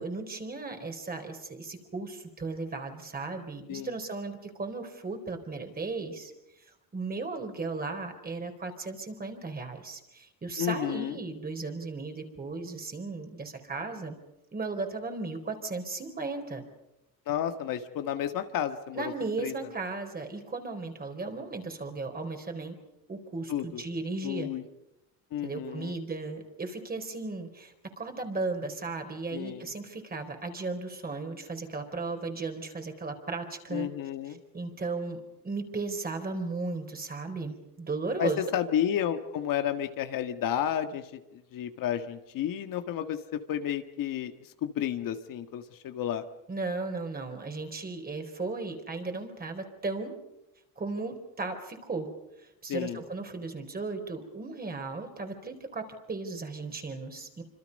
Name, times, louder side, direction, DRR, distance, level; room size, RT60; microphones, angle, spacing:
voice 1, 0.0-6.3 6.7-14.2 14.5-16.6 18.9-22.8 23.1-24.5 25.4-33.9 34.3-38.4 46.5-50.2 50.8-52.1 52.4-57.4, right 3 dB, 25° right, 5 dB, 4.3 m, -36 dB
voice 2, 10.6-11.2 17.3-19.1 19.4-19.5 23.5-23.8 24.2-24.6 25.3-25.9 29.3-29.7 33.7-34.4 38.2-46.2 52.7-53.0, left 10 dB, 60° left, 7 dB, 1.8 m, -31 dB
26.5 x 26.0 x 5.4 m, 0.91 s
cardioid pair, 135°, 37 cm